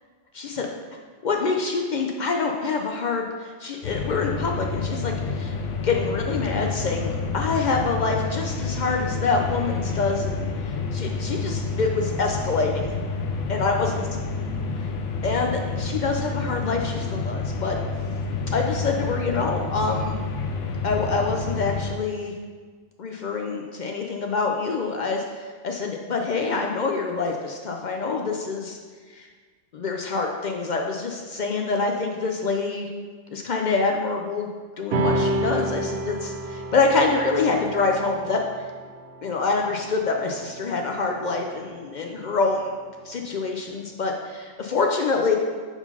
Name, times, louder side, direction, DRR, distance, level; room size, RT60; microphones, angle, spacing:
voice 1, 0.3-0.7 1.2-5.5 5.8-12.9 13.5-14.0 14.8-14.9 15.2-17.8 18.5-20.2 20.8-22.3 23.0-28.8 29.1-29.3 29.7-32.9 33.3-34.5 34.8-38.4 39.2-42.7 43.0-45.4, left 4 dB, 60° left, 2 dB, 0.5 m, -26 dB
sound 1, 3.8-21.9, left 4 dB, 85° left, 0.9 m, -29 dB
sound 2, 34.9-41.6, right 1 dB, 65° right, 0.8 m, -30 dB
4.7 x 3.9 x 5.4 m, 1.5 s
omnidirectional pair, 1.2 m